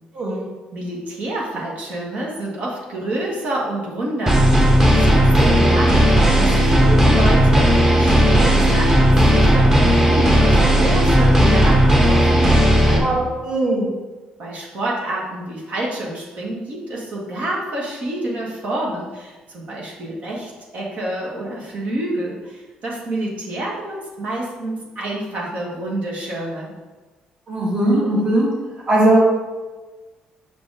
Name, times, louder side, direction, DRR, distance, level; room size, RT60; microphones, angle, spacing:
voice 1, 0.7-13.2 14.4-26.7, right 1 dB, 60° right, -3 dB, 1.9 m, -28 dB
sound 1, 4.3-13.0, equal, 15° right, 1.4 m, -14 dB
voice 2, 12.9-13.9 27.5-28.5 28.9-29.2, right 1 dB, 35° right, -4 dB, 1.8 m, -19 dB
5.7 x 5.2 x 4.9 m, 1.3 s
cardioid pair, 110°, 3 cm